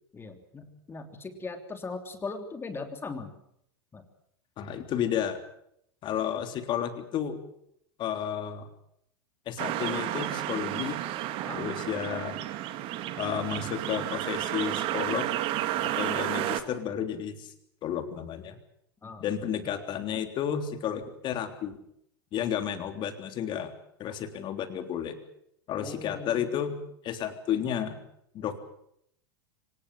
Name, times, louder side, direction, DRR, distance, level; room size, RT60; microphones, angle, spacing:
voice 1, 0.1-3.3 3.9-4.1 11.4-11.6 19.0-19.4 25.8-26.5, left 4 dB, 20° left, 7 dB, 3.2 m, -39 dB
voice 2, 4.6-5.4 6.0-7.4 8.0-8.7 9.5-11.0 11.5-12.4 13.2-15.3 15.8-17.5 17.8-18.6 19.2-21.8 22.3-23.7 24.0-25.2 25.7-26.8 27.0-28.0 28.3-28.6, left 9 dB, 40° left, 8 dB, 3.4 m, -32 dB
sound 1, 9.6-16.6, right 13 dB, 45° right, 2.1 m, -31 dB
24.5 x 19.5 x 7.7 m, 0.73 s
hypercardioid pair, 100°, 12 cm